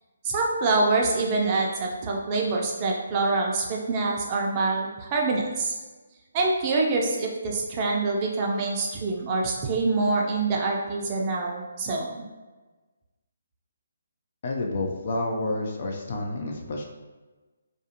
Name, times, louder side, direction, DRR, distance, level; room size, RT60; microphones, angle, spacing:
voice 1, 0.2-5.7 6.3-12.2, right 3 dB, 30° right, -1 dB, 0.4 m, -25 dB
voice 2, 14.4-16.8, left 2 dB, 45° left, 1 dB, 0.4 m, -29 dB
2.5 x 2.4 x 2.7 m, 1.2 s
figure-of-eight pair, 145°, 0 cm